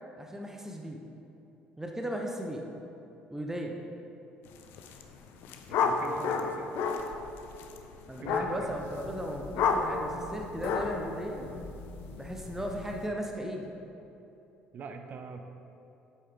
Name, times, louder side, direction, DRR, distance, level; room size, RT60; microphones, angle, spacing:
voice 1, 0.2-1.0 1.8-2.6 3.3-3.7 8.1-11.5 12.1-13.7, equal, 10° right, 1 dB, 1.0 m, -36 dB
sound 1, 4.6-5.0 5.3-13.1, left 5 dB, 55° left, 0.6 m, -32 dB
voice 2, 5.7-6.7 8.2-8.8 14.7-15.4, right 5 dB, 45° right, 6 dB, 0.8 m, -43 dB
8.5 x 8.0 x 3.8 m, 3.0 s
figure-of-eight pair, 55°, 4 cm